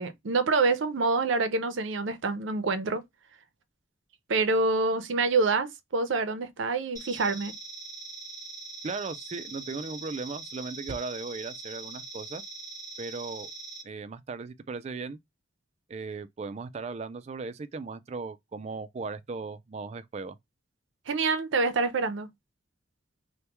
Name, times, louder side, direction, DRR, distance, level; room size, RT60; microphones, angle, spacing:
voice 1, 0.0-3.0 4.3-7.5 21.1-22.3, right 3 dB, 85° right, 0.6 m, -26 dB
sound 1, 7.0-13.8, right 3 dB, 20° left, 1.3 m, -42 dB
voice 2, 8.8-12.4 13.0-13.5 13.8-15.2 15.9-20.4, right 4 dB, 35° right, 0.3 m, -37 dB
2.9 x 2.1 x 3.3 m
head